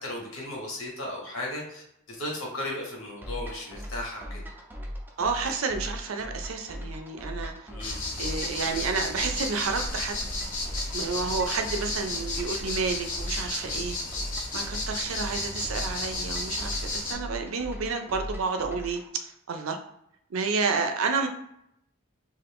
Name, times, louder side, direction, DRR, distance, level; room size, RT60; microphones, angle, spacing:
voice 1, 0.0-4.4 7.7-8.0, left 1 dB, 80° left, -2 dB, 1.3 m, -36 dB
sound 1, 3.2-19.1, equal, 10° right, 0.3 m, -39 dB
voice 2, 5.2-7.5 7.9-10.2 10.8-14.0 14.5-19.8 20.3-21.3, right 4 dB, 80° right, 5 dB, 0.5 m, -30 dB
sound 2, 7.8-17.1, left 2 dB, 40° left, 0.7 m, -33 dB
2.5 x 2.4 x 3.4 m, 0.76 s
head